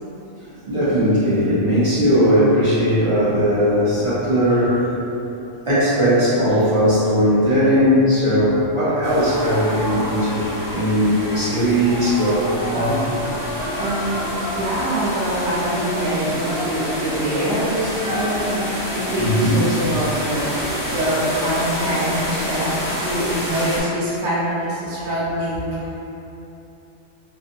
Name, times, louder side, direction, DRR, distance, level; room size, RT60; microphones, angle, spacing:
voice 1, 0.4-4.9 5.7-13.0 19.2-19.7, equal, 35° right, -11 dB, 0.6 m, -18 dB
sound 1, 9.0-23.8, equal, 35° left, 0.3 m, -27 dB
voice 2, 13.5-25.8, right 1 dB, 75° right, -8 dB, 1.1 m, -24 dB
2.6 x 2.6 x 2.5 m, 3.0 s
omnidirectional pair, 1.2 m